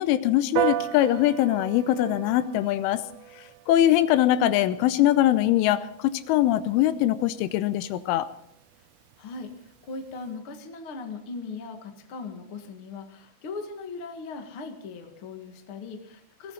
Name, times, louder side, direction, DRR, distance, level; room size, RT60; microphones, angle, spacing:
voice 1, 0.0-3.0 3.7-8.3, left 13 dB, 80° left, 13 dB, 3.2 m, -22 dB
Piano, 0.6-10.3, right 14 dB, 80° right, 3.2 m, -37 dB
voice 2, 9.2-16.5, left 4 dB, 65° left, 4 dB, 1.3 m, -39 dB
21.0 x 15.5 x 4.0 m, 0.68 s
omnidirectional pair, 5.7 m